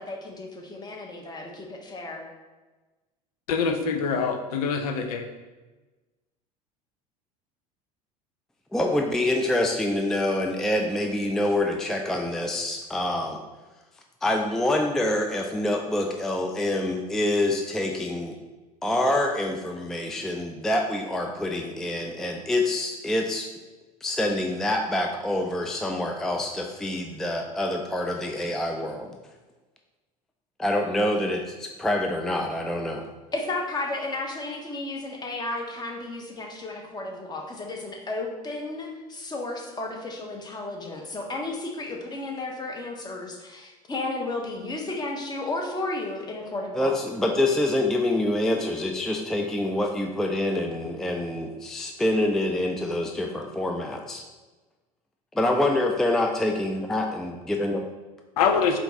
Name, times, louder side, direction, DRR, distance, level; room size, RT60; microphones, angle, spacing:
voice 1, 0.0-2.3 33.3-47.0, left 2 dB, 20° left, 1 dB, 0.9 m, -33 dB
voice 2, 3.5-5.2 58.4-58.8, left 5 dB, 75° left, 4 dB, 0.5 m, -24 dB
voice 3, 8.7-13.4 14.2-18.4 18.8-23.5 24.0-29.1 30.6-33.0 46.8-54.2 55.3-57.8, left 1 dB, ahead, 2 dB, 0.3 m, -26 dB
4.4 x 2.4 x 4.0 m, 1.2 s
hypercardioid pair, 75°, 19 cm